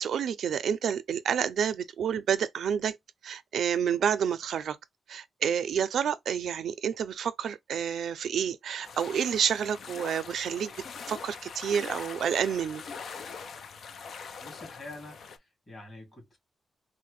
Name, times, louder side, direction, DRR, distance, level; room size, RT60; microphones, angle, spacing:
voice 1, 0.0-3.0 3.2-4.8 5.1-10.7 11.1-12.8, right 8 dB, 80° right, 0.5 m, -29 dB
sound 1, 8.8-15.4, left 5 dB, 60° left, 0.5 m, -42 dB
voice 2, 14.4-16.4, left 2 dB, 25° left, 2.5 m, -46 dB
4.2 x 2.1 x 3.1 m
wide cardioid pair, 175°, 0 cm